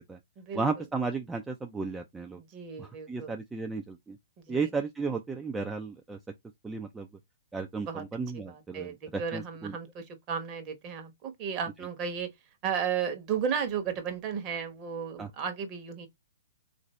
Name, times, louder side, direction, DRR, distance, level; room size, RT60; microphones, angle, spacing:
voice 1, 0.5-2.4 2.8-4.2 4.5-6.2 6.6-7.1 7.5-9.8 15.2-15.3, right 4 dB, 10° right, 0.4 m, -34 dB
voice 2, 2.4-3.3 4.4-4.7 7.9-8.0 8.3-12.3 12.6-16.1, right 7 dB, 30° right, 1.0 m, -34 dB
3.9 x 2.6 x 3.1 m
figure-of-eight pair, 120°, 0 cm